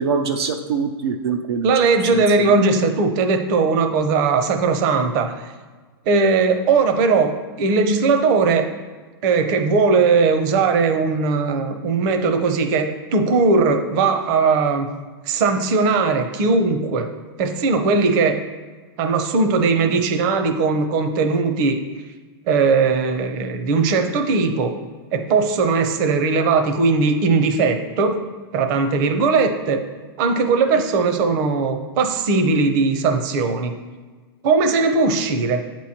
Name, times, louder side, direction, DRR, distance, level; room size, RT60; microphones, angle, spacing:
voice 1, 0.0-1.7 2.1-2.5, right 5 dB, 85° right, 5 dB, 0.5 m, -24 dB
voice 2, 1.6-5.4 6.1-7.3 7.6-8.7 9.2-14.9 15.3-17.1 17.4-18.4 19.0-21.8 22.5-24.7 25.1-28.2 28.5-29.8 30.2-33.7 34.4-35.6, right 4 dB, 50° right, 7 dB, 0.7 m, -19 dB
8.2 x 3.1 x 4.2 m, 1.4 s
hypercardioid pair, 125°, 13 cm